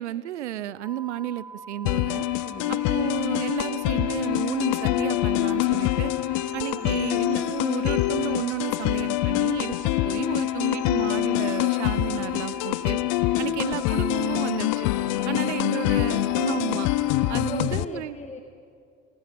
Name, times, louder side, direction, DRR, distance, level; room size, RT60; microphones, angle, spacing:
voice 1, 0.0-2.3 2.7-6.1 6.5-13.0 13.4-14.9 15.3-16.9 17.3-18.2, right 13 dB, 85° right, 18 dB, 0.6 m, -32 dB
sound 1, 0.8-17.5, right 4 dB, 10° right, 0.9 m, -43 dB
sound 2, 1.9-17.9, left 17 dB, 60° left, 0.7 m, -25 dB
voice 2, 2.4-2.9 6.5-7.1 13.3-13.6 15.2-15.6 17.3-18.4, left 3 dB, 20° left, 2 dB, 2.0 m, -40 dB
28.5 x 18.0 x 5.1 m, 2.3 s
hypercardioid pair, 65°, 34 cm